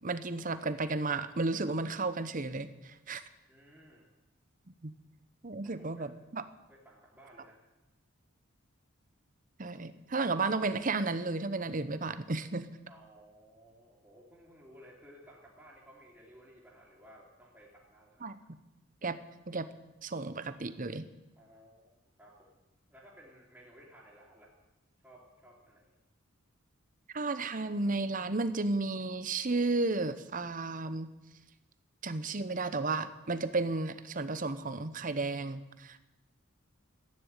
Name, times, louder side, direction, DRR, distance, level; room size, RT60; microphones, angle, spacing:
voice 1, 0.0-3.2 4.8-4.9 5.4-6.4 9.6-12.7 18.2-18.4 19.0-19.2 19.5-19.7 20.0-21.1 27.1-31.1 32.0-36.0, right 3 dB, 40° right, 12 dB, 0.9 m, -33 dB
voice 2, 3.5-4.1 5.6-6.1 6.7-7.6 12.9-18.3 21.4-21.9 22.2-22.5 22.9-24.5 25.0-25.9, equal, 10° right, -8 dB, 2.9 m, -57 dB
14.0 x 10.5 x 9.0 m, 1.0 s
head